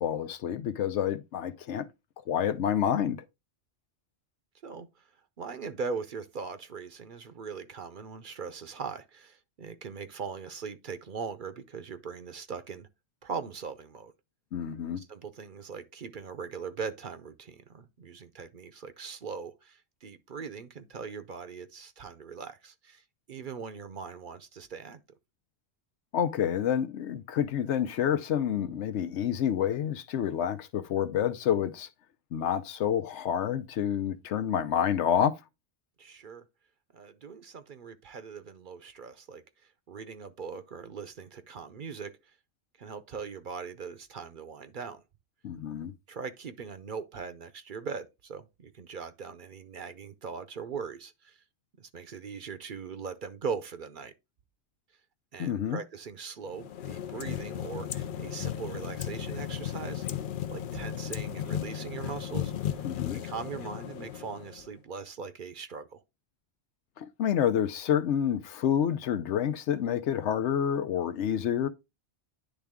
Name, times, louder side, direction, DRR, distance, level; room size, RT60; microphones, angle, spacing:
voice 1, 0.0-1.9 2.3-3.2 14.5-15.0 26.1-31.9 32.3-35.3 45.4-45.9 55.4-55.8 62.8-63.2 67.0-71.7, left 9 dB, 85° left, 1.0 m, -28 dB
voice 2, 4.6-5.1 5.4-12.9 13.2-14.1 15.0-25.0 36.0-36.5 36.9-39.4 39.9-42.2 42.8-45.0 46.1-51.4 51.8-54.1 55.3-60.0 60.5-66.0, right 5 dB, 55° right, 0.7 m, -40 dB
sound 1, 56.5-64.7, left 10 dB, 60° left, 0.6 m, -35 dB
10.0 x 3.4 x 3.5 m
omnidirectional pair, 1.2 m